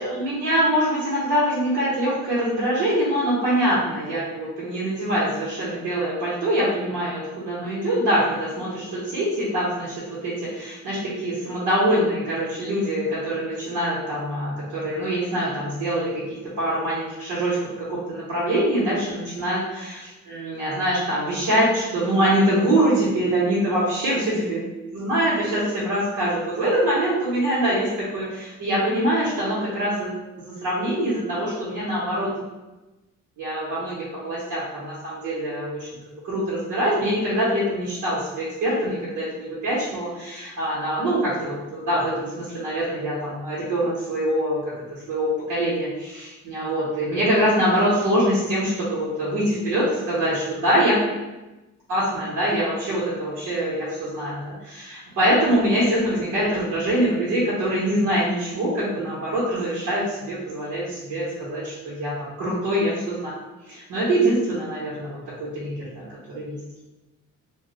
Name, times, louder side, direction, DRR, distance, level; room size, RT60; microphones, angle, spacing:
voice 1, 0.0-9.9 10.2-16.2 16.6-24.6 24.9-32.3 33.4-34.0 34.2-35.9 36.2-44.6 45.1-51.0 51.9-63.4 63.7-66.0 66.3-66.6, right 1 dB, 85° right, -9 dB, 1.0 m, -24 dB
2.2 x 2.1 x 3.7 m, 1.1 s
cardioid pair, 90°, 30 cm